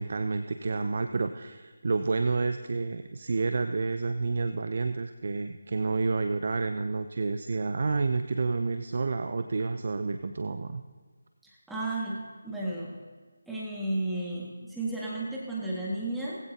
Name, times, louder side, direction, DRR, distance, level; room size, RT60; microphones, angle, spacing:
voice 1, 0.0-10.8, right 3 dB, 50° right, 9 dB, 0.6 m, -29 dB
voice 2, 11.7-12.2 12.4-12.9 13.5-16.4, right 2 dB, ahead, -7 dB, 1.9 m, -33 dB
20.0 x 15.5 x 2.8 m, 1.5 s
figure-of-eight pair, 160°, 0 cm